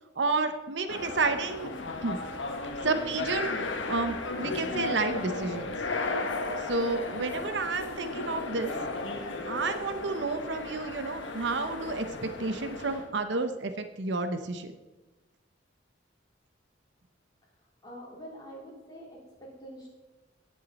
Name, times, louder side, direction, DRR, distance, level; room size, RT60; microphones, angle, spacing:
voice 1, 0.2-1.7 2.0-2.2 2.8-3.5 3.9-5.7 6.6-8.7 9.5-14.7, right 3 dB, 65° right, 8 dB, 0.8 m, -30 dB
sound 1, 0.9-13.1, left 3 dB, 75° left, 1.4 m, -35 dB
voice 2, 17.8-19.9, equal, 20° left, -4 dB, 3.6 m, -45 dB
17.5 x 7.4 x 4.1 m, 1.1 s
head